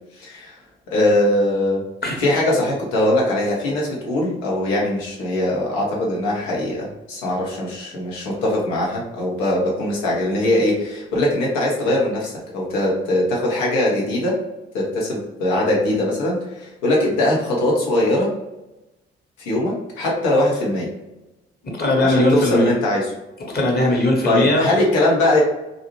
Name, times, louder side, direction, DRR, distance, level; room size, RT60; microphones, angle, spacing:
voice 1, 0.1-0.6 0.9-1.8 2.2-14.4 14.7-18.3 19.4-20.9 22.0-23.1 24.2-25.4, left 1 dB, 75° left, -3 dB, 0.9 m, -21 dB
voice 2, 21.6-22.7 23.5-24.7, left 1 dB, 30° left, -1 dB, 1.2 m, -19 dB
2.6 x 2.4 x 2.9 m, 0.98 s
hypercardioid pair, 40°, 30 cm